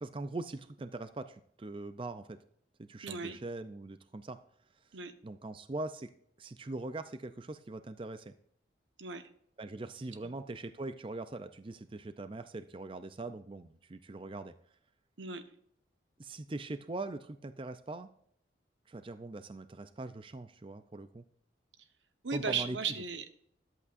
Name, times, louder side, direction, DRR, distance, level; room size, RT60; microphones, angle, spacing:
voice 1, 0.0-2.4 2.8-4.4 5.2-6.1 6.4-8.3 9.6-14.5 16.2-18.1 18.9-21.2 22.3-22.8, right 2 dB, 30° right, 11 dB, 0.5 m, -41 dB
voice 2, 3.0-3.4 4.9-5.1 9.0-9.2 10.2-10.3 15.2-15.4 22.2-23.3, right 5 dB, 85° right, 9 dB, 1.1 m, -36 dB
14.0 x 11.0 x 2.6 m, 0.68 s
head